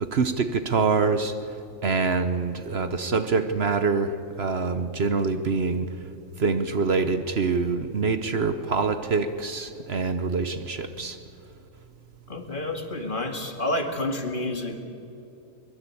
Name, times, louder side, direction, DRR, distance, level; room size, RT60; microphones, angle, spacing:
voice 1, 0.0-1.4 1.8-5.9 6.4-11.2, right 4 dB, 55° right, 10 dB, 1.1 m, -25 dB
voice 2, 12.3-14.8, left 1 dB, 40° left, 5 dB, 2.2 m, -29 dB
23.0 x 21.5 x 8.6 m, 2.6 s
omnidirectional pair, 1.4 m